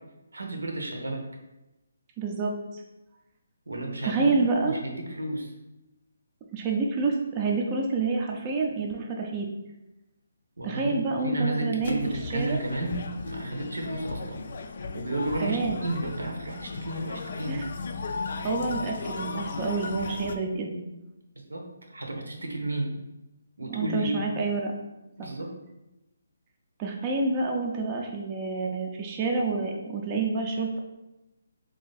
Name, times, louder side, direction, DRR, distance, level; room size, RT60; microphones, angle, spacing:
voice 1, 0.3-1.2 3.7-4.4 4.6-5.5 10.6-14.4 14.9-17.6 21.5-23.0 23.6-24.2 25.2-25.5, right 2 dB, 85° right, 2 dB, 0.8 m, -32 dB
voice 2, 2.2-2.8 4.0-4.8 6.5-9.5 10.6-12.0 12.3-12.6 15.4-15.9 17.5-17.7 18.4-20.8 23.7-24.7 25.2-25.3 26.8-30.8, right 3 dB, 25° right, 0 dB, 0.4 m, -28 dB
sound 1, 11.8-20.4, left 4 dB, 55° left, 0.3 m, -36 dB
3.0 x 2.6 x 3.9 m, 0.98 s
figure-of-eight pair, 155°, 0 cm